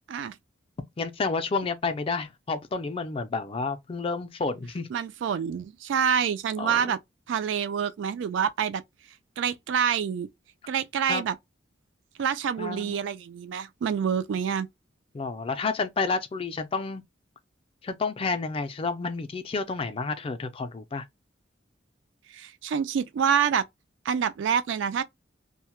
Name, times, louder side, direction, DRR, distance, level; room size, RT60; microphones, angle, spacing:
voice 1, 1.0-4.9 6.6-7.0 11.1-11.2 12.6-13.0 15.1-17.0 17.8-21.1, left 4 dB, 30° left, 0.3 m, -30 dB
voice 2, 4.9-7.0 7.3-8.8 9.4-10.3 10.7-11.4 12.2-14.7 22.3-23.6 24.1-25.0, right 7 dB, 75° right, 0.3 m, -27 dB
2.1 x 2.0 x 2.9 m
head